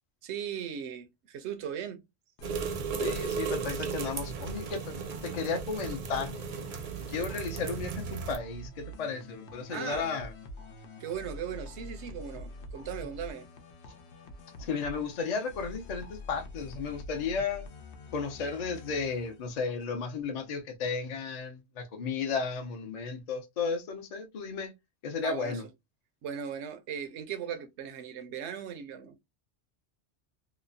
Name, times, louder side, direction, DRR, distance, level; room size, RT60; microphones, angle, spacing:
voice 1, 0.2-2.0 9.7-10.1 11.0-13.5 25.2-25.6 26.2-29.2, right 8 dB, 90° right, 0.9 m, -38 dB
sound 1, 2.4-19.8, equal, 85° left, 0.9 m, -45 dB
sound 2, 2.4-8.4, right 5 dB, 60° right, 0.6 m, -35 dB
voice 2, 3.0-6.4 7.1-10.3 14.6-17.7 18.1-24.7 25.0-25.6, left 5 dB, 50° left, 0.6 m, -34 dB
3.0 x 2.0 x 2.4 m
omnidirectional pair, 1.1 m